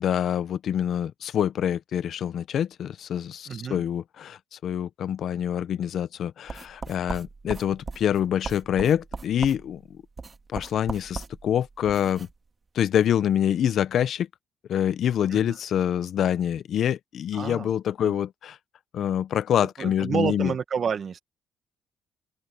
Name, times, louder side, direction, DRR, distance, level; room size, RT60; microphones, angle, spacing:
voice 1, 0.0-9.8 10.5-12.3 12.7-14.3 14.7-18.6 18.9-20.5, left 9 dB, 65° left, 0.9 m, -26 dB
voice 2, 3.5-3.8 15.3-15.6 17.3-17.7 18.0-18.2 19.6-21.2, right 7 dB, 50° right, 1.9 m, -30 dB
sound 1, 6.5-12.3, right 4 dB, 30° right, 1.9 m, -38 dB
open air
cardioid pair, 90°, 0 cm